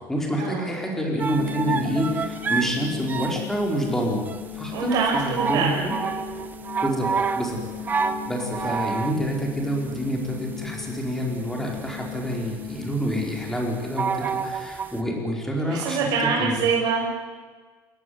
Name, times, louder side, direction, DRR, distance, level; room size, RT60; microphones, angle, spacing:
voice 1, 0.1-4.3 4.5-5.9 6.8-7.6 8.3-16.1 16.4-16.7, equal, 5° left, 0 dB, 4.9 m, -27 dB
sound 1, 1.2-15.0, right 5 dB, 25° right, 1.5 m, -29 dB
sound 2, 1.3-13.7, left 11 dB, 85° left, 7.3 m, -38 dB
voice 2, 4.7-5.8 7.9-8.0 15.7-17.1, right 5 dB, 65° right, -1 dB, 6.2 m, -24 dB
28.0 x 16.0 x 9.7 m, 1.4 s
cardioid pair, 145°, 7 cm